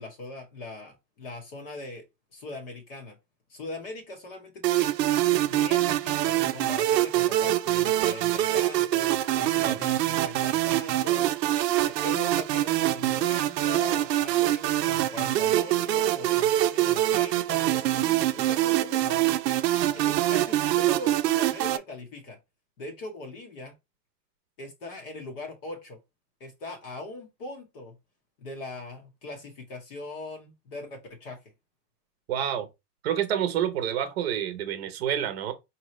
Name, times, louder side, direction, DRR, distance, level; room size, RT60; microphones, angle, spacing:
voice 1, 0.0-2.1 2.3-3.2 3.5-4.9 5.4-11.3 11.8-19.3 19.9-22.4 22.8-23.7 24.6-26.0 26.4-28.0 28.4-31.4, left 2 dB, 35° left, 0.9 m, -41 dB
sound 1, 4.6-21.8, right 14 dB, 75° right, 0.7 m, -24 dB
voice 2, 32.3-32.7 33.0-35.5, right 10 dB, 40° right, 0.8 m, -28 dB
5.3 x 2.9 x 3.1 m
supercardioid pair, 180°, 49 cm